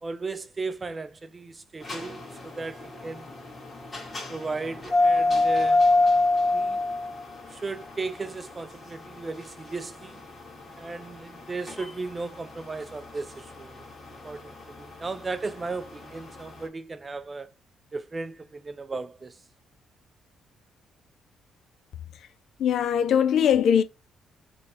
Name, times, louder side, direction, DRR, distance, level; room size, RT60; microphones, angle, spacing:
voice 1, 0.0-3.3 4.3-5.9 6.5-6.8 7.5-10.2 10.8-13.9 14.2-17.5 17.9-19.4, right 3 dB, 30° right, 0.5 m, -36 dB
sound 1, 1.8-16.5, left 2 dB, 30° left, 1.7 m, -27 dB
voice 2, 22.6-23.8, left 8 dB, 70° left, 0.4 m, -21 dB
3.4 x 2.5 x 4.2 m
cardioid pair, 90°, 0 cm